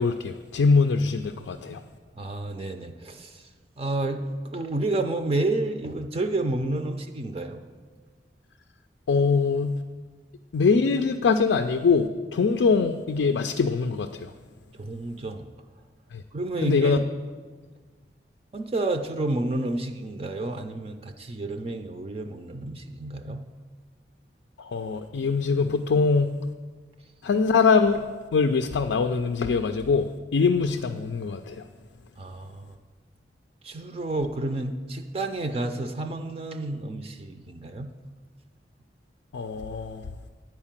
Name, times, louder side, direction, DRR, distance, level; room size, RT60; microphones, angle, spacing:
voice 1, 0.0-1.8 9.1-9.8 10.5-14.3 16.1-16.2 16.6-17.0 24.6-26.3 27.2-28.0 28.3-31.6 39.3-40.0, left 4 dB, 85° left, 7 dB, 0.4 m, -23 dB
voice 2, 2.2-3.4 3.8-4.2 4.5-7.6 14.8-15.5 16.3-17.1 18.5-23.4 32.2-32.7 33.6-37.9, right 2 dB, 35° right, 6 dB, 0.4 m, -30 dB
9.6 x 4.5 x 7.4 m, 1.4 s
head